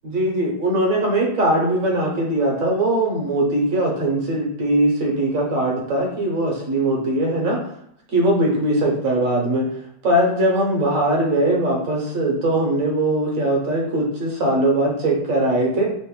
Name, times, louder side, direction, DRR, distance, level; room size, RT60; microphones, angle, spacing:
voice 1, 0.0-7.6 8.1-9.7 10.0-15.9, right 1 dB, 55° right, -1 dB, 1.1 m, -20 dB
3.3 x 2.6 x 3.6 m, 0.73 s
omnidirectional pair, 1.9 m